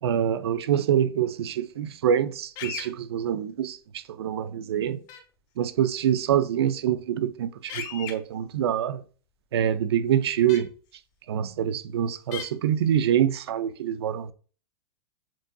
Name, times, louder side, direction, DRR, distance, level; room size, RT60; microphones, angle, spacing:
voice 1, 0.0-5.0 5.6-9.0 9.5-10.7 11.3-14.3, right 9 dB, 85° right, 0.5 m, -25 dB
sound 1, 2.6-2.9 5.1-5.2 7.7-8.1 10.5-10.6 12.3-12.5, left 8 dB, 35° left, 0.8 m, -35 dB
7.4 x 2.6 x 2.3 m
supercardioid pair, 145°, 13 cm